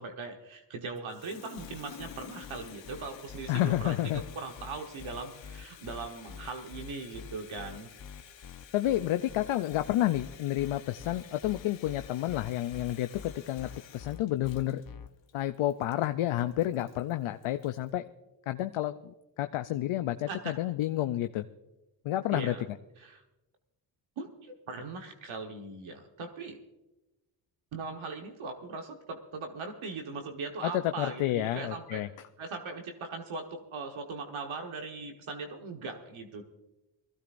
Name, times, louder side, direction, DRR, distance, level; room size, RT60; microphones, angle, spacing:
voice 1, 0.0-7.9 20.3-20.6 22.3-22.6 23.0-23.2 24.2-26.6 27.7-32.1 32.4-36.4, right 4 dB, 80° right, 3 dB, 1.4 m, -40 dB
Water tap faucet, 1.0-17.9, left 9 dB, 65° left, 1.1 m, -52 dB
sound 1, 1.6-15.1, left 7 dB, 45° left, 0.9 m, -46 dB
voice 2, 3.5-4.2 8.7-14.8 15.3-18.1 18.5-21.4 22.0-22.6 30.6-32.1, left 14 dB, 85° left, 8 dB, 0.6 m, -30 dB
21.0 x 15.5 x 2.6 m, 1.0 s
cardioid pair, 50°, 48 cm